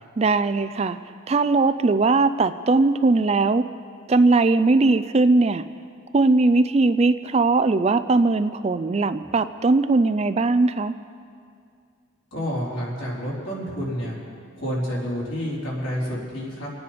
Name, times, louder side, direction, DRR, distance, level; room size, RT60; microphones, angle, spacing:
voice 1, 0.2-1.0 1.3-3.7 4.1-5.7 6.1-10.9, right 3 dB, 30° right, 12 dB, 0.3 m, -19 dB
voice 2, 12.3-14.2 14.6-16.7, equal, 65° left, -5 dB, 4.1 m, -29 dB
26.0 x 9.2 x 5.2 m, 2.3 s
head